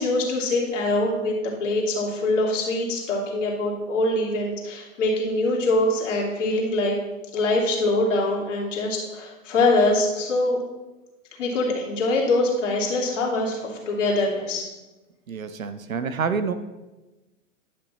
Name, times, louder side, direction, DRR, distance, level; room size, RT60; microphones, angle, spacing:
voice 1, 0.0-1.3 1.6-7.0 7.3-10.6 11.4-14.7, left 2 dB, 65° left, -2 dB, 2.9 m, -23 dB
voice 2, 15.3-16.5, right 5 dB, 90° right, 11 dB, 0.8 m, -27 dB
10.5 x 5.9 x 4.2 m, 1.1 s
hypercardioid pair, 110°, 39 cm